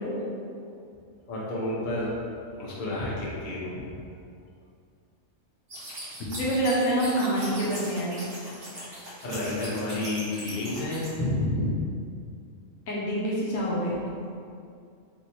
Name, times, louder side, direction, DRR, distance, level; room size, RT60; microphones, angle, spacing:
voice 1, 1.3-2.1 2.6-3.9 9.2-11.7, left 1 dB, 45° left, -6 dB, 0.9 m, -30 dB
sound 1, 5.7-11.1, right 1 dB, 50° right, 1.3 m, -40 dB
voice 2, 6.4-8.2 12.9-14.0, right 1 dB, 85° left, -5 dB, 1.3 m, -26 dB
3.5 x 2.9 x 4.2 m, 2.3 s
omnidirectional pair, 1.3 m